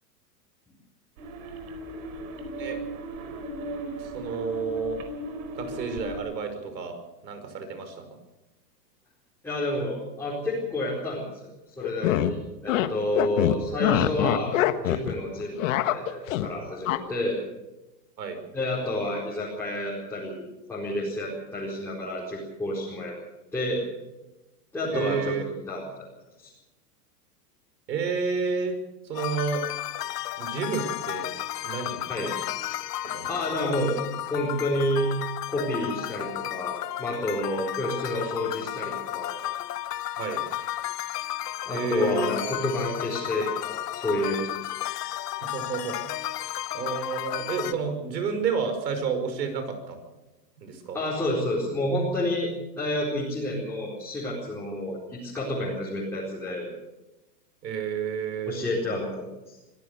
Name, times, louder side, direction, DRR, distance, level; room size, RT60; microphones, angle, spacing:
sound 1, 1.2-6.2, right 1 dB, 55° right, 4.8 m, -37 dB
voice 1, 4.0-5.0 5.6-7.0 7.2-8.2 13.9-14.0 18.2-18.4 24.9-25.5 27.9-28.8 29.0-29.6 30.4-31.3 31.6-32.1 33.0-33.3 40.2-40.4 41.7-42.3 45.5-46.1 46.7-50.0 50.6-51.0 57.6-58.6, right 5 dB, 85° right, 8 dB, 5.6 m, -30 dB
voice 2, 9.4-11.2 11.8-14.5 14.8-15.5 15.8-17.4 18.5-20.4 20.7-23.2 23.5-23.8 24.7-25.4 25.7-25.8 26.4-26.5 32.1-32.3 33.3-34.0 34.3-35.1 35.5-39.4 41.7-44.7 50.9-56.7 58.5-59.1 59.5-59.6, left 1 dB, 5° left, -6 dB, 4.3 m, -29 dB
sound 2, 11.8-12.3 12.7-12.9 13.1-15.1 15.4-16.5 16.9-17.0, left 14 dB, 50° left, 1.6 m, -24 dB
sound 3, 29.1-47.7, left 13 dB, 75° left, 1.2 m, -33 dB
25.0 x 15.5 x 6.8 m, 1.0 s
supercardioid pair, 155°, 49 cm